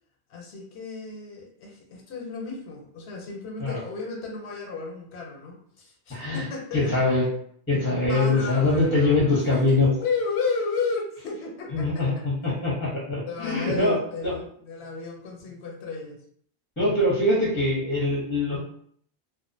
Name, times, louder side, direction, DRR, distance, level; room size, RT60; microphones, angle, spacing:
voice 1, 0.3-7.1 8.0-12.7 13.3-16.2, left 4 dB, 90° left, 0 dB, 0.9 m, -33 dB
voice 2, 6.1-6.5 6.7-7.3 7.7-9.9 11.7-14.0 14.2-14.4 16.8-18.6, left 2 dB, 15° left, -5 dB, 0.6 m, -23 dB
2.4 x 2.0 x 2.5 m, 0.62 s
omnidirectional pair, 1.1 m